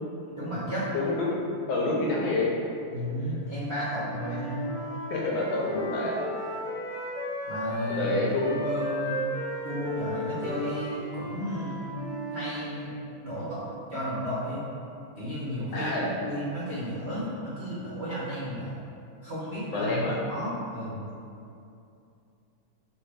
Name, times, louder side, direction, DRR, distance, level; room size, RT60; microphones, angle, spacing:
voice 1, 0.3-0.9 2.9-4.8 7.4-8.2 8.5-9.2 9.6-11.9 12.3-12.9 13.2-14.6 15.2-18.9 19.2-21.1, equal, 60° right, -10 dB, 0.7 m, -33 dB
voice 2, 0.9-1.3 1.7-2.5 4.3-4.4 5.1-6.2 8.0-8.4 15.7-16.1 19.7-20.1, left 2 dB, 75° left, -4 dB, 1.4 m, -27 dB
Wind instrument woodwind instrument, 4.1-8.0 8.3-12.5, equal, 40° left, 0.6 m, -35 dB
3.2 x 3.1 x 4.6 m, 2.6 s
omnidirectional pair, 2.3 m